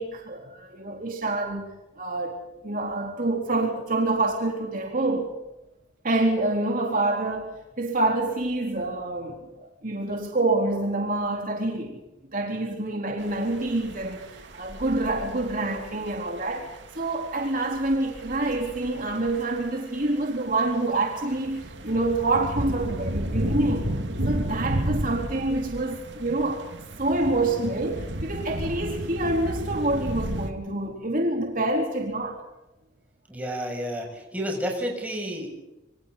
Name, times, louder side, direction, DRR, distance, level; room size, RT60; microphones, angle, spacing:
voice 1, 0.0-5.3 6.0-12.0 12.3-23.9 24.3-26.7 27.0-32.4, right 2 dB, 50° right, 3.8 m, -27 dB
sound 1, 13.2-30.5, right 1 dB, 75° right, 2.3 m, -33 dB
voice 2, 33.3-35.5, equal, 10° right, 7.3 m, -31 dB
28.0 x 25.5 x 4.1 m
head